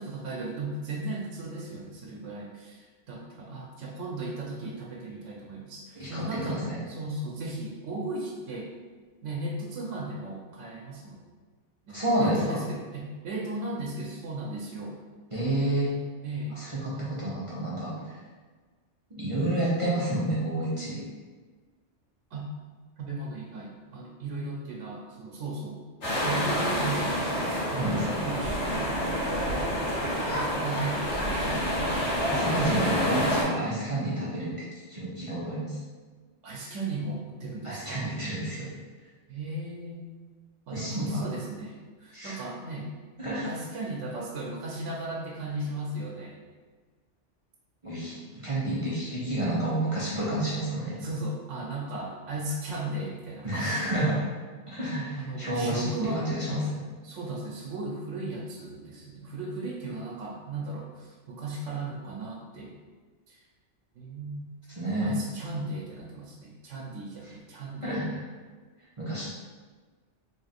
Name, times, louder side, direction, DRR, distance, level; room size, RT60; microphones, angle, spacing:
voice 1, 0.0-8.7 9.2-11.2 11.9-15.0 16.2-16.6 22.3-22.4 23.0-25.8 26.2-27.2 27.7-29.0 30.2-31.7 32.8-33.0 36.4-38.1 39.3-40.1 40.7-42.9 43.4-46.4 51.0-53.7 55.2-56.7 57.0-62.7 63.3-63.4 64.0-64.5 65.0-68.0, right 2 dB, 90° right, -3 dB, 1.0 m, -36 dB
voice 2, 6.0-6.8 11.9-12.6 15.3-15.9 16.6-17.9 19.1-21.0 27.7-28.2 32.3-34.5 34.9-35.8 37.6-38.7 40.7-41.3 42.1-42.4 43.2-43.5 47.8-51.0 53.4-54.2 54.7-56.6 64.8-65.1 67.8-68.2 69.0-69.3, right 1 dB, 30° right, -8 dB, 0.7 m, -29 dB
sound 1, 26.0-33.4, equal, 70° left, 1.7 m, -28 dB
3.6 x 2.5 x 4.0 m, 1.4 s
omnidirectional pair, 1.2 m